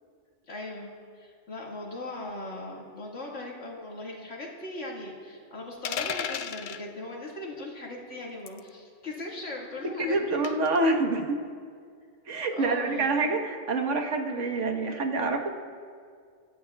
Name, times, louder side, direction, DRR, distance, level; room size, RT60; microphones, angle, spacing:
voice 1, 0.5-0.9 1.2-10.4 12.5-13.4, left 2 dB, 75° left, -3 dB, 2.4 m, -39 dB
sound 1, 5.8-6.8 8.5-8.7 10.4-10.8, left 7 dB, 60° left, 0.5 m, -33 dB
voice 2, 10.0-11.4 12.3-15.5, right 3 dB, 80° right, 3 dB, 1.6 m, -27 dB
26.0 x 13.5 x 2.3 m, 2.1 s
omnidirectional pair, 1.2 m